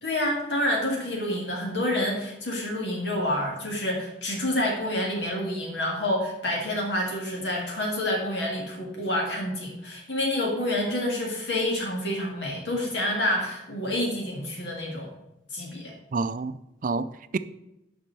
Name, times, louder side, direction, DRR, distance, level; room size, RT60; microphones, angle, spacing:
voice 1, 0.0-15.1 15.5-15.9, left 1 dB, 75° left, 2.1 m, -28 dB
voice 2, 16.1-17.4, right 4 dB, 45° right, 0.4 m, -29 dB
7.4 x 5.5 x 6.9 m
head